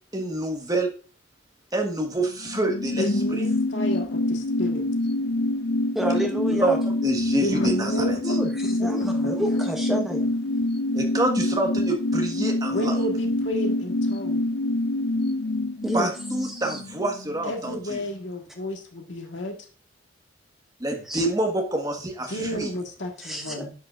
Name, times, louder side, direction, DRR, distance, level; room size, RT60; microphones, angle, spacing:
voice 1, 0.1-0.9 1.7-3.1 3.3-3.4 6.5-6.7 7.0-8.4 10.9-13.0 15.9-18.0 20.8-22.7, right 1 dB, 20° right, 2 dB, 1.4 m, -27 dB
sound 1, 2.2-17.5 17.8-17.9, left 1 dB, 55° left, 0.6 m, -26 dB
voice 2, 3.0-4.9 7.4-8.4 8.8-8.9 9.2-9.6 12.7-14.5 17.4-19.7 22.2-23.7, left 1 dB, 70° left, 3 dB, 1.6 m, -32 dB
voice 3, 5.9-6.8 8.2-10.3 15.8-16.1 16.4-16.8 21.0-21.2 23.2-23.6, equal, ahead, 1 dB, 1.1 m, -29 dB
10.5 x 5.8 x 2.5 m, 0.38 s
head